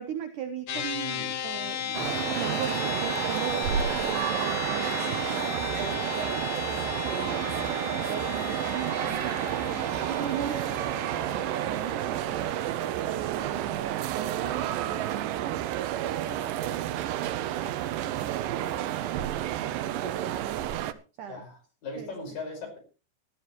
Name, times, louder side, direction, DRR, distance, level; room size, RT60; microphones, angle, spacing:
voice 1, 0.0-2.0 2.4-6.4 7.0-10.7 11.2-12.5 13.0-15.6 17.6-19.5 19.8-20.7 21.2-21.4 22.0-22.1, right 8 dB, 70° right, 8 dB, 2.0 m, -38 dB
sound 1, 0.7-14.2, left 9 dB, 75° left, 1.5 m, -36 dB
sound 2, 1.9-20.9, right 12 dB, 90° right, 1.9 m, -30 dB
voice 2, 16.3-16.8 21.3-22.8, left 3 dB, 50° left, 4 dB, 6.7 m, -40 dB
19.0 x 12.5 x 3.1 m, 0.33 s
omnidirectional pair, 5.0 m